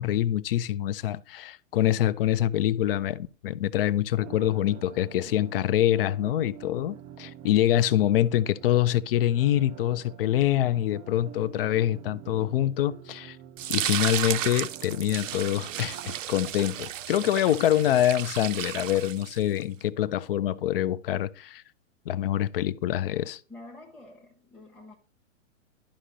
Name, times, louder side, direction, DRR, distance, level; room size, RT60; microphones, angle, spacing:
voice 1, 0.0-13.4 13.7-21.6 22.1-23.4, left 12 dB, 50° left, 0.4 m, -25 dB
sound 1, 4.2-16.2, right 11 dB, 25° right, 0.4 m, -47 dB
sound 2, 13.6-19.6, right 11 dB, 75° right, 0.6 m, -33 dB
voice 2, 23.2-24.9, left 2 dB, ahead, 0.8 m, -48 dB
11.5 x 5.1 x 2.6 m
hypercardioid pair, 130°, 39 cm